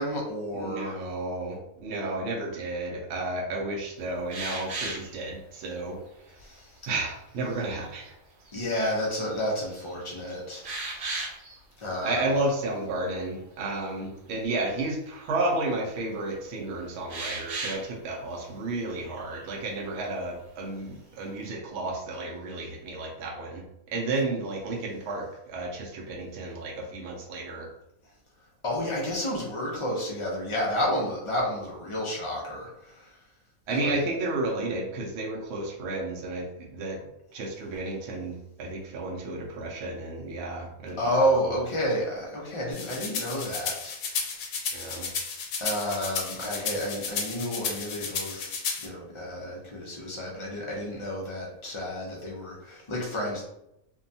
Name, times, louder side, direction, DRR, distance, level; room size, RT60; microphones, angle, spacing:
voice 1, 0.0-0.9 6.4-6.6 8.5-10.6 11.8-12.2 28.6-32.7 33.8-34.0 41.0-43.9 45.6-53.4, equal, 55° left, -4 dB, 0.3 m, -30 dB
voice 2, 0.5-6.0 6.9-8.1 12.0-23.6 23.9-27.7 33.7-37.0 37.3-41.6 44.7-45.1, right 2 dB, 65° right, -1 dB, 0.7 m, -32 dB
sound 1, 4.3-5.1 5.8-5.9 6.4-6.9 7.4-7.9 8.5-8.6 9.0-9.5 9.7-11.6 11.9-12.1 12.4-12.6 17.1-17.9 18.9-19.5, right 3 dB, 80° right, 1.2 m, -36 dB
sound 2, 42.7-48.9, left 5 dB, 75° left, 1.0 m, -33 dB
2.6 x 2.2 x 2.6 m, 0.82 s
omnidirectional pair, 1.5 m